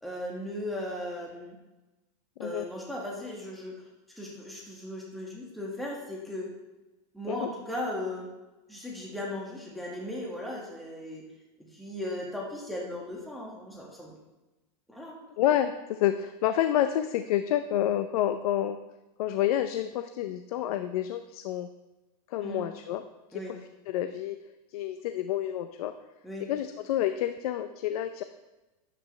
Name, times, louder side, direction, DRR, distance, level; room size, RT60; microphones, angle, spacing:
voice 1, 0.0-1.6 2.4-3.8 4.2-6.5 7.1-8.3 8.7-11.2 11.7-14.1 14.9-15.2 22.4-22.6 23.3-23.5 26.2-26.5, left 1 dB, ahead, -4 dB, 1.8 m, -37 dB
voice 2, 15.4-18.8 19.2-21.7 22.3-23.0 23.3-23.6 23.9-24.4 24.7-25.9 26.5-28.2, left 11 dB, 70° left, 9 dB, 0.6 m, -29 dB
11.0 x 8.5 x 3.2 m, 1.1 s
supercardioid pair, 140°, 20 cm